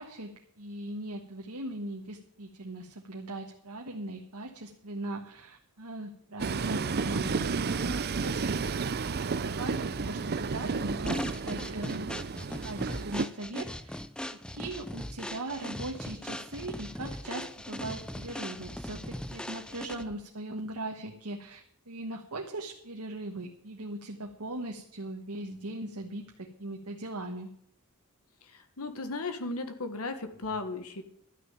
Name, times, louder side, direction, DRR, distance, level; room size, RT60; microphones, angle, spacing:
voice 1, 0.0-8.7 9.4-12.1 12.6-14.0 14.5-27.5, right 1 dB, 85° right, 1 dB, 1.5 m, -39 dB
Train, 6.4-13.3, right 4 dB, 45° right, 0.6 m, -32 dB
sound 1, 11.1-20.2, left 1 dB, 5° left, 0.5 m, -39 dB
voice 2, 28.4-31.0, left 3 dB, 70° left, 8 dB, 1.5 m, -36 dB
12.5 x 6.6 x 9.0 m, 0.66 s
head